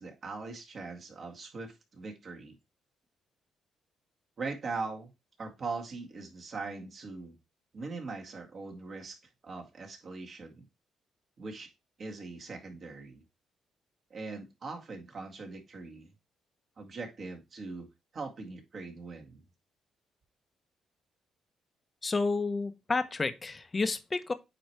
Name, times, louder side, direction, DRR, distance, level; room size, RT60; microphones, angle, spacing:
voice 1, 0.0-2.6 4.4-5.1 5.4-7.4 7.7-10.7 11.4-11.7 12.0-13.2 14.1-16.1 16.8-17.9 18.1-19.4, right 3 dB, 50° right, 2.1 m, -41 dB
voice 2, 22.0-24.3, left 3 dB, 25° left, 0.9 m, -30 dB
8.9 x 3.1 x 4.6 m
cardioid pair, 90°, 0 cm